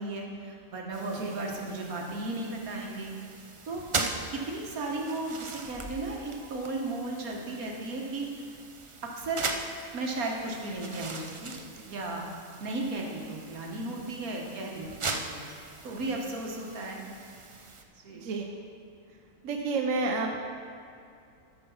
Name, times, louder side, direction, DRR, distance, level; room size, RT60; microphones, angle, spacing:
voice 1, 0.0-3.1 3.7-3.8 4.3-8.3 9.0-9.4 9.9-11.5 11.9-12.3 12.6-15.5 15.8-17.0 18.0-18.3, right 2 dB, 85° right, 0 dB, 1.8 m, -35 dB
sound 1, 0.9-17.8, right 3 dB, 45° right, 0.4 m, -40 dB
voice 2, 18.2-18.5 19.4-20.4, right 3 dB, 70° right, 1 dB, 1.1 m, -30 dB
13.0 x 5.5 x 5.6 m, 2.4 s
omnidirectional pair, 1.5 m